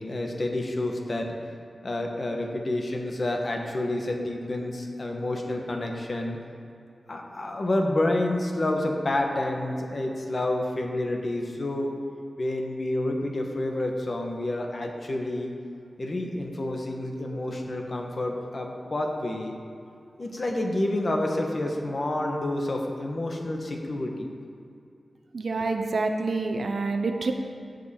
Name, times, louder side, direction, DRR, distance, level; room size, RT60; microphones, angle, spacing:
voice 1, 0.0-1.3 1.8-6.4 7.1-12.0 12.4-15.5 16.0-19.6 20.2-24.3, left 1 dB, 45° left, 2 dB, 1.2 m, -29 dB
voice 2, 25.3-27.3, right 3 dB, 65° right, 4 dB, 0.7 m, -27 dB
15.5 x 5.3 x 4.3 m, 2.5 s
wide cardioid pair, 110°, 0 cm